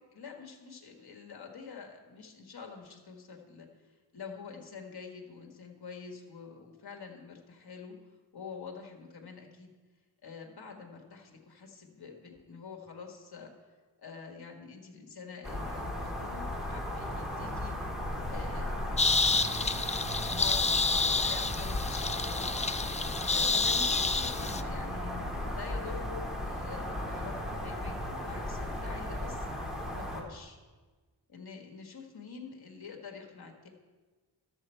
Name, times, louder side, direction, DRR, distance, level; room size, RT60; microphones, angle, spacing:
voice 1, 0.1-8.0 8.3-9.7 10.2-17.7 18.3-22.5 23.3-29.5 29.9-30.6 31.3-33.7, left 5 dB, 55° left, 2 dB, 1.5 m, -46 dB
sound 1, 15.4-30.2, left 1 dB, ahead, 1.7 m, -36 dB
sound 2, 19.0-24.6, left 4 dB, 20° left, 0.3 m, -29 dB
12.5 x 7.0 x 4.4 m, 1.3 s
wide cardioid pair, 70°, 45 cm